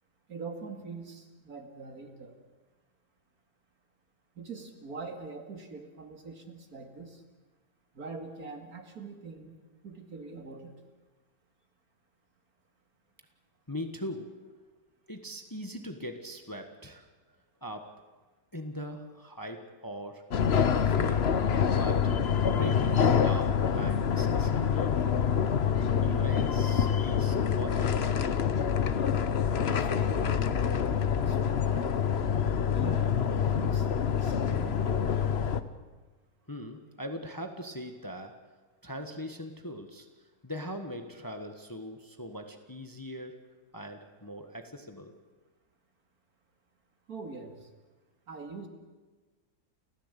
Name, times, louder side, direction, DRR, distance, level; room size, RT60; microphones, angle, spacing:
voice 1, 0.3-2.3 4.4-7.2 7.9-9.6 9.8-10.7 29.6-31.9 32.7-34.8 47.1-47.7 48.3-48.7, right 4 dB, 65° right, 5 dB, 2.8 m, -43 dB
voice 2, 13.7-14.5 15.1-17.1 17.6-18.0 18.5-20.3 20.7-21.3 21.7-22.2 22.4-25.0 25.9-28.1 36.5-38.5 38.8-40.1 40.4-43.4 43.7-45.1, equal, 15° left, 6 dB, 1.3 m, -41 dB
sound 1, 20.3-35.6, left 7 dB, 45° left, 1.0 m, -26 dB
29.5 x 15.0 x 8.4 m, 1.3 s
omnidirectional pair, 1.7 m